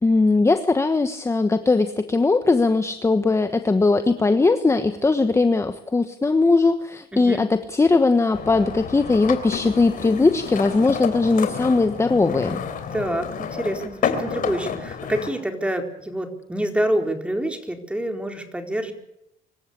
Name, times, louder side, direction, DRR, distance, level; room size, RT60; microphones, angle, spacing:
voice 1, 0.0-12.6, left 3 dB, 15° left, 9 dB, 1.2 m, -19 dB
voice 2, 7.1-7.4 12.9-18.9, right 1 dB, 5° right, 4 dB, 4.1 m, -27 dB
sound 1, 8.3-15.3, left 7 dB, 55° left, 3.5 m, -30 dB
25.5 x 14.0 x 8.5 m, 0.83 s
cardioid pair, 110°, 17 cm